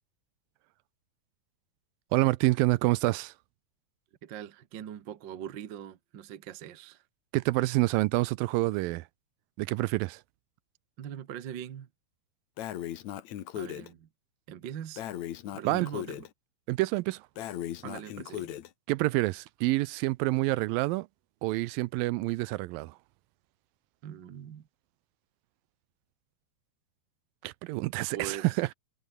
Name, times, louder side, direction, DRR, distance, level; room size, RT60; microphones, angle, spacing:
voice 1, 2.1-3.3 7.3-9.0 9.6-10.2 15.7-15.9 16.7-17.2 18.9-21.1 21.4-22.9 27.4-28.7, right 20 dB, 85° right, 2.3 m, -27 dB
voice 2, 4.2-7.0 11.0-11.9 13.5-14.1 14.5-15.0 15.5-16.3 17.8-18.6 24.0-24.7 28.1-28.6, right 10 dB, 65° right, 1.1 m, -42 dB
Breathing, 12.6-13.9 15.0-16.3 17.4-18.7, left 11 dB, 60° left, 2.3 m, -37 dB
omnidirectional pair, 4.2 m